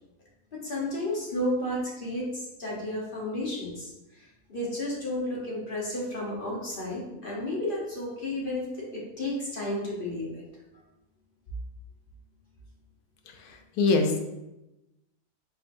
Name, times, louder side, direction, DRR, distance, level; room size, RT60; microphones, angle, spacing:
voice 1, 0.5-10.4, left 1 dB, 40° left, -5 dB, 1.0 m, -32 dB
voice 2, 13.3-14.2, left 3 dB, 75° left, 4 dB, 1.1 m, -25 dB
4.3 x 3.9 x 2.5 m, 0.95 s
omnidirectional pair, 1.6 m